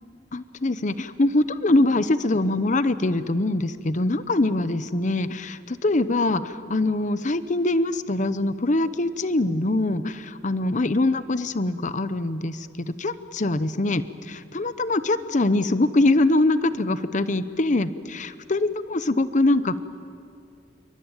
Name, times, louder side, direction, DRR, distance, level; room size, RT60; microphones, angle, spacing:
voice 1, 0.3-19.8, left 2 dB, 45° left, 13 dB, 0.9 m, -23 dB
27.5 x 24.0 x 9.0 m, 2.5 s
head